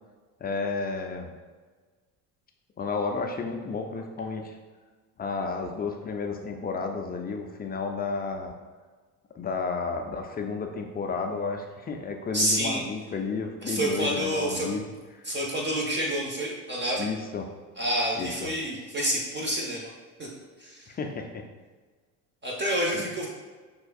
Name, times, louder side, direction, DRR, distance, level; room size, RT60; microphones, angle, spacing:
voice 1, 0.4-1.3 2.8-4.5 5.2-8.5 9.3-14.9 15.1-15.3 17.0-17.4 18.2-18.5 20.9-21.4 22.9-23.1, left 4 dB, 20° left, 3 dB, 0.5 m, -32 dB
voice 2, 12.3-12.8 13.6-14.7 15.2-17.1 17.8-19.9 20.2-20.3 20.6-20.9 22.4-23.3, right 1 dB, 25° right, -3 dB, 0.9 m, -28 dB
6.3 x 2.5 x 2.4 m, 1.4 s
hypercardioid pair, 70°, 46 cm